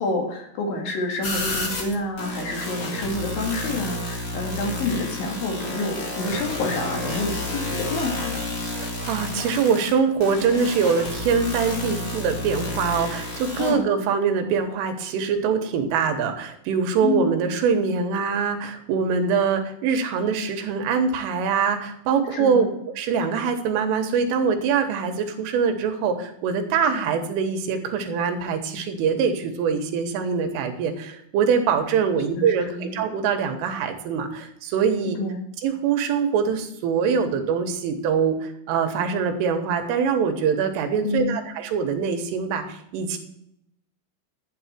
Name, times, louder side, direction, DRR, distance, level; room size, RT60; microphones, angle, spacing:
voice 1, 0.0-8.5 13.6-13.9 17.0-17.4 22.3-22.7 32.3-33.0 35.2-35.5 41.0-41.4, left 3 dB, 55° left, 1 dB, 3.2 m, -28 dB
sound 1, 1.2-13.7, left 1 dB, 75° left, 1.1 m, -30 dB
voice 2, 8.7-22.7 23.0-35.2 35.6-43.2, right 6 dB, 90° right, 6 dB, 3.9 m, -23 dB
12.5 x 9.4 x 4.4 m, 0.75 s
omnidirectional pair, 5.6 m